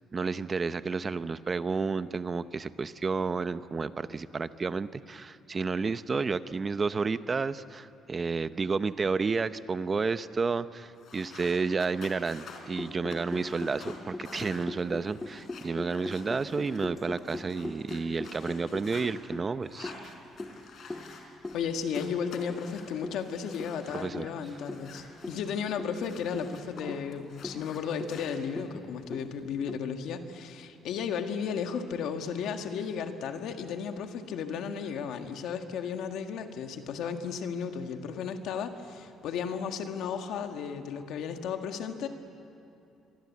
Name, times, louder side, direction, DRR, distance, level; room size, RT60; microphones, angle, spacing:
voice 1, 0.1-20.1 23.9-24.3, right 4 dB, 25° right, 13 dB, 0.7 m, -31 dB
sound 1, 11.0-19.1 19.6-21.6 21.9-24.1 24.4-26.8 27.1-28.4, left 5 dB, 50° left, 4.2 m, -50 dB
sound 2, 12.8-29.8, left 2 dB, 15° left, 1.3 m, -42 dB
voice 2, 21.5-42.1, left 7 dB, 75° left, 6 dB, 1.7 m, -34 dB
26.5 x 23.0 x 8.5 m, 2.8 s
cardioid pair, 140°, 0 cm